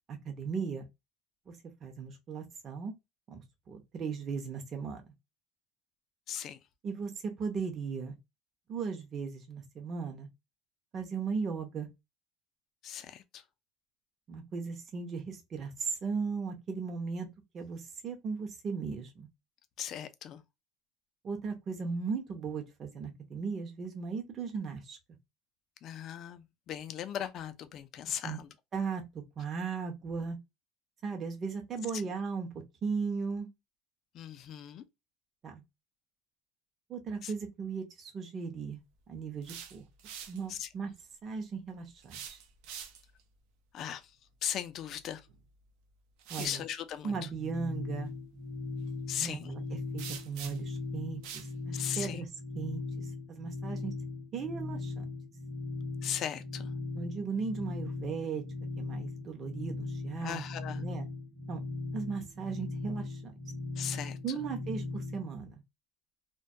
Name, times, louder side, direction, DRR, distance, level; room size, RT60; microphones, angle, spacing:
voice 1, 0.1-0.9 1.5-1.6 1.8-2.9 3.3-3.4 3.7-5.0 6.8-8.1 8.7-10.3 10.9-11.9 14.3-17.3 17.5-19.3 21.2-25.0 28.2-28.4 28.7-29.0 29.4-30.4 31.0-32.5 32.8-33.5 35.4-35.6 36.9-38.8 39.1-39.8 40.3-40.9 41.2-42.4 46.3-46.6 47.0-48.1 49.2-52.3 52.5-53.9 54.3-55.0 56.9-58.4 58.8-60.4 60.7-61.1 61.5-61.6 61.9-63.3 64.2-65.5, right 5 dB, 35° right, 0.6 m, -37 dB
voice 2, 6.3-6.6 12.8-13.4 19.8-20.4 25.8-28.5 31.9-32.0 34.1-34.8 37.2-37.3 40.5-40.7 43.7-44.1 44.4-45.2 46.4-47.2 49.1-49.5 51.7-52.2 56.0-56.7 60.2-60.8 63.8-64.4, left 10 dB, 45° left, 0.4 m, -38 dB
sound 1, 39.2-40.4 42.0-43.2 45.3-45.4 46.2-46.6 50.0-50.8 51.2-51.5, right 8 dB, 75° right, 0.5 m, -44 dB
sound 2, 47.1-65.3, left 3 dB, 55° right, 1.0 m, -39 dB
2.2 x 2.2 x 2.6 m
cardioid pair, 135°, 0 cm